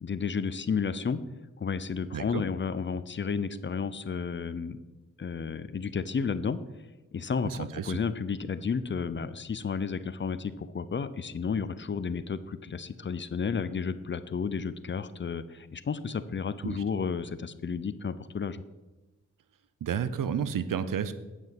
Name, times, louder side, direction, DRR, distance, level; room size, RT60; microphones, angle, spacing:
voice 1, 0.0-1.2 1.6-4.8 5.2-6.6 7.1-18.6, left 6 dB, 35° left, 14 dB, 0.5 m, -32 dB
voice 2, 2.1-2.4 7.4-8.0 16.6-16.8 19.8-21.1, right 8 dB, 80° right, 13 dB, 0.7 m, -31 dB
9.1 x 6.1 x 5.8 m, 1.1 s
cardioid pair, 60°, 32 cm